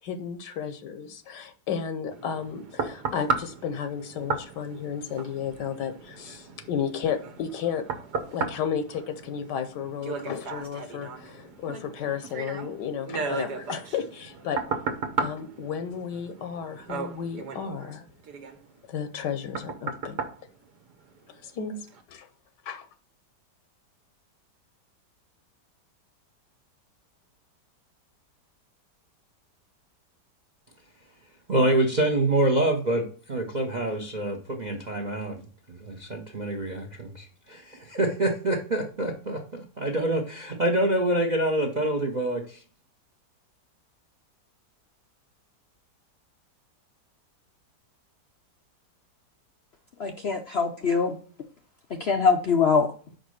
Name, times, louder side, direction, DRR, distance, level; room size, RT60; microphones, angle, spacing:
voice 1, 0.0-7.8 8.3-14.6 15.2-18.1 18.9-20.3 21.3-21.8 22.1-22.3 22.6-22.9, left 7 dB, 80° left, 9 dB, 1.4 m, -33 dB
sound 1, 2.1-21.4 21.9-22.0, right 4 dB, 70° right, 1.5 m, -35 dB
voice 2, 31.5-35.4 35.7-42.6, right 1 dB, 35° right, 4 dB, 0.8 m, -26 dB
voice 3, 50.0-51.2 51.9-52.9, left 5 dB, 65° left, 5 dB, 0.6 m, -23 dB
5.2 x 5.1 x 6.3 m, 0.42 s
omnidirectional pair, 1.9 m